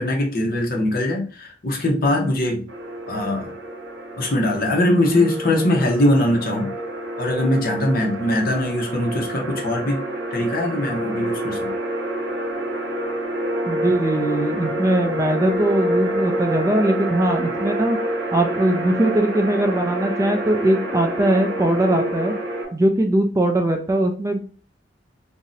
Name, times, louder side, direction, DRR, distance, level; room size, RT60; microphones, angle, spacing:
voice 1, 0.0-2.7 3.1-3.5 4.2-6.7 7.2-10.0 10.3-11.7, left 1 dB, 50° left, 2 dB, 0.7 m, -21 dB
sound 1, 2.7-22.6, right 1 dB, 70° right, 0.8 m, -28 dB
voice 2, 13.6-18.0 18.3-22.3 22.7-24.4, right 1 dB, 15° right, 5 dB, 0.3 m, -20 dB
2.7 x 2.0 x 3.8 m, 0.40 s
head